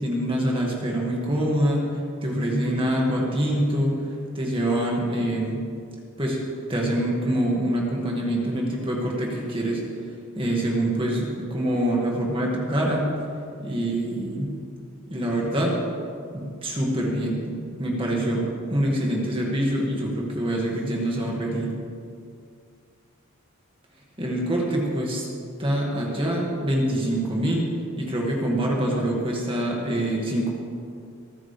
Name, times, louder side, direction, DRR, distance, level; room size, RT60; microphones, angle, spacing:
voice 1, 0.0-1.9 2.2-4.0 4.3-5.6 6.2-6.4 6.7-9.8 10.4-13.1 13.6-14.5 15.1-15.8 16.3-17.5 17.8-21.7 24.2-25.2 25.6-27.7 28.0-30.5, right 1 dB, 25° right, -2 dB, 2.2 m, -25 dB
26.0 x 9.3 x 3.5 m, 2.3 s
head